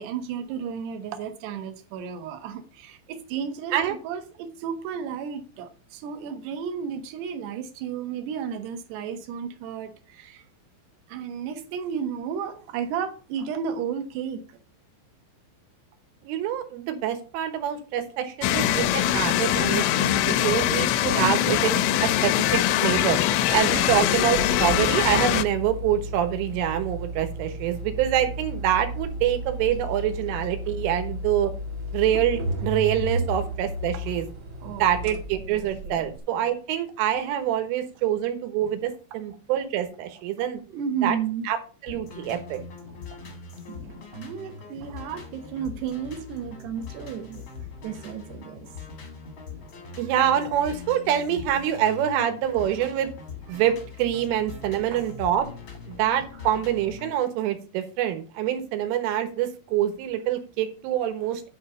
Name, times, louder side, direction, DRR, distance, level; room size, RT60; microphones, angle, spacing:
voice 1, 0.0-10.5 11.1-14.6 23.7-24.2 34.6-36.0 40.7-41.5 43.1-43.2 43.7-47.5 47.8-48.7, right 7 dB, 70° right, 3.0 m, -33 dB
voice 2, 16.3-23.2 23.5-31.5 31.9-34.3 34.8-40.6 41.0-41.2 41.5-41.6 41.8-42.6 50.0-53.1 53.5-55.5 55.9-61.4, right 10 dB, 90° right, 3.8 m, -26 dB
sound 1, 18.4-25.4, left 12 dB, 85° left, 3.1 m, -22 dB
sound 2, 23.3-36.2, equal, 50° right, 2.2 m, -33 dB
sound 3, 41.9-57.1, left 5 dB, 60° left, 1.3 m, -42 dB
9.7 x 4.3 x 6.6 m
omnidirectional pair, 5.6 m